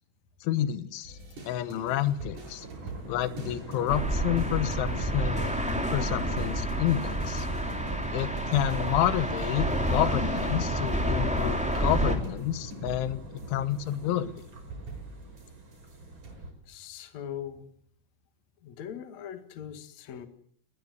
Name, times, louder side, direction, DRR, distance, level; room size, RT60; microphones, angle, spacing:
voice 1, 0.4-1.2 1.5-2.7 3.1-5.6 5.9-7.5 8.1-14.4, left 12 dB, 90° left, 14 dB, 3.6 m, -29 dB
sound 1, 1.0-16.3, right 3 dB, 45° right, 8.7 m, -45 dB
Thunder, 1.7-16.5, right 1 dB, 25° right, 5.4 m, -42 dB
sound 2, 3.9-12.2, equal, ahead, 1.6 m, -29 dB
voice 2, 16.7-17.7 18.6-20.3, left 9 dB, 50° left, 9 dB, 2.5 m, -40 dB
21.0 x 19.0 x 9.5 m, 0.65 s
omnidirectional pair, 5.3 m